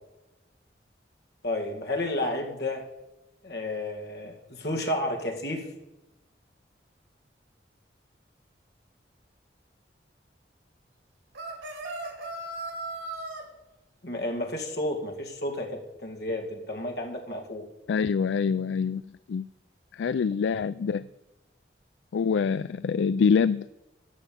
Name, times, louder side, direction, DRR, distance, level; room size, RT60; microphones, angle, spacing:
voice 1, 1.4-2.9 3.4-5.7 14.0-17.7, left 1 dB, 60° left, 2.2 m, -31 dB
sound 1, 11.3-13.4, right 2 dB, 90° right, 3.1 m, -36 dB
voice 2, 17.9-19.0 19.3-19.5 19.9-21.1 22.1-23.7, left 6 dB, 80° left, 0.3 m, -25 dB
13.5 x 5.8 x 8.8 m
head